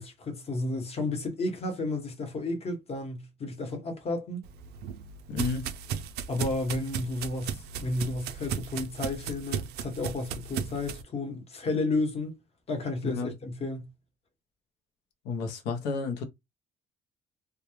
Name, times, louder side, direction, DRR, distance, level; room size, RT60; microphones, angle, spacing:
voice 1, 0.0-4.4 6.3-12.4 12.7-13.9, left 2 dB, 35° left, 1.0 m, -32 dB
sound 1, 4.4-11.0, right 7 dB, 75° right, 0.4 m, -36 dB
voice 2, 5.3-5.7 13.0-13.3 15.2-16.2, left 4 dB, 85° left, 0.8 m, -31 dB
2.3 x 2.2 x 3.0 m
cardioid pair, 110°, 17 cm